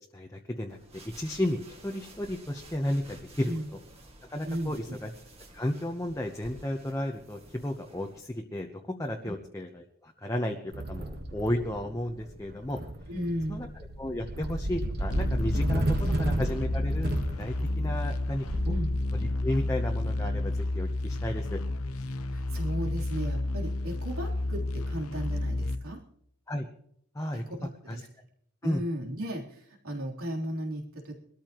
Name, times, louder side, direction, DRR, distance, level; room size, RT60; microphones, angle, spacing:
voice 1, 0.1-0.8 1.0-3.5 4.3-5.1 5.5-12.8 13.5-13.7 14.0-17.1 17.4-18.5 19.4-21.6 26.5-26.7 27.1-27.4 27.9-28.0 28.6-28.8, left 1 dB, 15° left, 2 dB, 0.9 m, -33 dB
sound 1, 0.7-8.2, right 1 dB, 25° right, 2.0 m, -52 dB
voice 2, 4.5-5.0 9.2-9.3 13.1-13.7 16.0-16.2 18.7-19.0 22.3-26.0 27.3-28.1 28.6-31.2, equal, 80° right, -2 dB, 3.6 m, -35 dB
sound 2, 10.7-20.9, right 1 dB, 45° right, 1.4 m, -33 dB
sound 3, 15.1-25.8, left 2 dB, 85° left, 0.9 m, -31 dB
22.5 x 13.5 x 3.0 m, 0.69 s
head